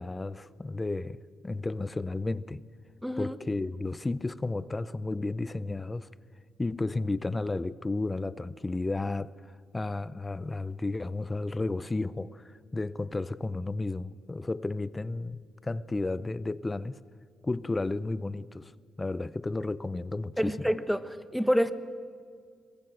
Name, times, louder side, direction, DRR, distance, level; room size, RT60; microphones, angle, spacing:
voice 1, 0.0-2.6 3.2-6.1 6.6-17.0 17.4-18.7 19.0-20.6, left 2 dB, 20° left, 0.7 m, -33 dB
voice 2, 3.0-3.4 20.4-21.7, equal, ahead, 1.2 m, -27 dB
23.0 x 21.0 x 7.8 m
cardioid pair, 90°, 0 cm